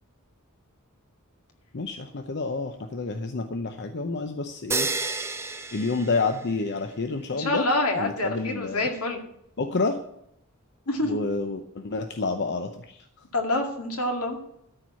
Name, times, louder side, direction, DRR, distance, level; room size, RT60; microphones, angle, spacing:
voice 1, 1.7-4.9 5.7-7.7 8.0-8.9 9.6-10.0 11.0-13.0, left 3 dB, 50° left, 6 dB, 0.7 m, -29 dB
sound 1, 4.7-6.8, right 3 dB, 10° right, 0.6 m, -31 dB
voice 2, 7.3-9.2 10.9-11.2 13.3-14.4, left 1 dB, 80° left, 3 dB, 2.2 m, -26 dB
13.0 x 4.7 x 8.4 m, 0.76 s
head